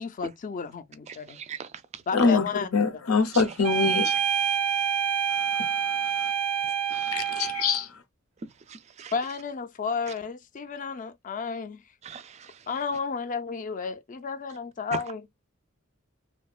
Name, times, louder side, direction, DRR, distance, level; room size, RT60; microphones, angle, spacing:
voice 1, 0.0-1.4 2.1-2.9 9.1-11.8 12.7-15.2, left 5 dB, 40° left, 0.4 m, -32 dB
voice 2, 1.1-2.0 3.3-3.4 3.9-4.0 6.9-7.1 8.7-9.1 12.0-12.7 14.9-15.0, right 6 dB, 30° right, 0.3 m, -40 dB
voice 3, 2.1-2.5 2.7-4.2 7.1-7.9, left 4 dB, 90° left, 0.7 m, -24 dB
sound 1, 3.6-7.8, right 8 dB, 90° right, 0.5 m, -27 dB
2.7 x 2.2 x 2.3 m
head